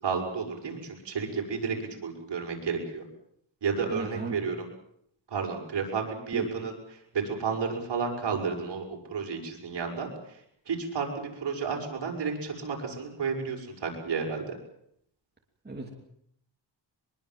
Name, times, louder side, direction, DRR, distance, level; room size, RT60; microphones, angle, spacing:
voice 1, 0.0-3.0 3.6-4.7 5.3-14.5, right 5 dB, 65° right, 1 dB, 6.5 m, -32 dB
voice 2, 3.9-4.4 6.3-6.5 15.6-15.9, right 3 dB, 20° right, 0 dB, 3.0 m, -34 dB
23.5 x 22.5 x 7.6 m, 0.71 s
wide cardioid pair, 150°, 45 cm